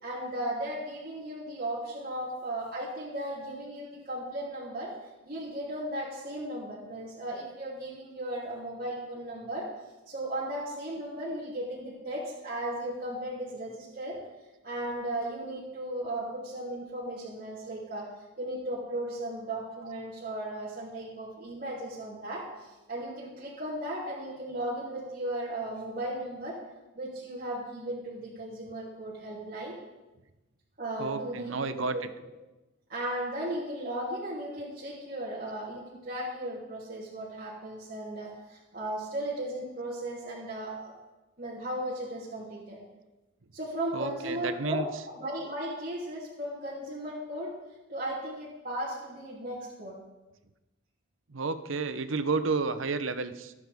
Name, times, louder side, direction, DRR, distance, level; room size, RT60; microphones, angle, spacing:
voice 1, 0.0-4.9 5.3-9.7 10.1-14.2 14.6-18.1 18.4-26.6 26.9-29.8 30.8-32.0 32.9-40.9 41.4-42.8 43.5-47.5 47.9-50.0, right 1 dB, 45° right, -8 dB, 3.4 m, -36 dB
voice 2, 31.0-32.0 43.9-44.8 51.3-53.5, right 4 dB, 75° right, 11 dB, 0.9 m, -31 dB
25.5 x 9.8 x 3.7 m, 1.1 s
head